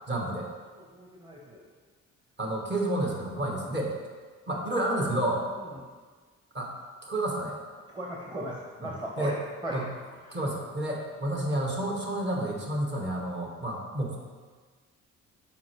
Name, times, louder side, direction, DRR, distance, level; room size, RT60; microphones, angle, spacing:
voice 1, 0.1-0.5 2.4-3.9 4.5-5.4 6.5-6.7 7.0-7.5 8.8-8.9 9.2-9.4 9.7-9.9 10.3-14.2, right 1 dB, 35° right, -1 dB, 1.3 m, -30 dB
voice 2, 0.9-1.6 7.9-8.5 8.8-9.3 9.6-9.8, right 1 dB, 15° right, -3 dB, 1.0 m, -36 dB
7.1 x 4.5 x 3.2 m, 1.5 s
cardioid pair, 90°, 30 cm